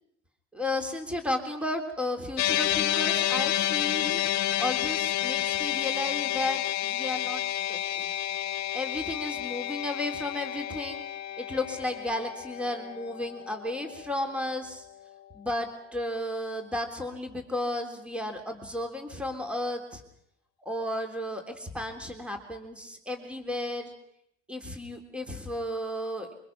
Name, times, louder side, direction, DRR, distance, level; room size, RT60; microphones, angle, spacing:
voice 1, 0.5-4.2 4.6-7.4 7.7-8.1 8.7-11.0 11.4-14.8 15.3-20.0 20.6-23.9 24.5-26.3, left 1 dB, 5° right, 5 dB, 3.5 m, -33 dB
sound 1, 2.4-14.8, left 13 dB, 45° left, 1.7 m, -30 dB
24.5 x 24.0 x 6.1 m, 0.74 s
hypercardioid pair, 95°, 37 cm